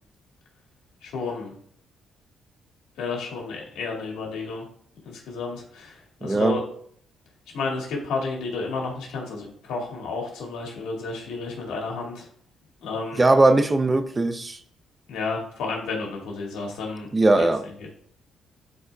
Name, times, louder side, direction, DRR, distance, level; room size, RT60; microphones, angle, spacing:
voice 1, 1.0-1.5 3.0-4.6 5.0-6.6 7.5-12.3 12.8-13.2 15.1-17.5 17.8-17.9, left 4 dB, 85° left, 2.1 m, -31 dB
voice 2, 6.2-6.6 13.2-14.6 17.1-17.6, right 2 dB, 25° right, 0.6 m, -19 dB
12.0 x 4.2 x 2.3 m
cardioid pair, 90°, 0 cm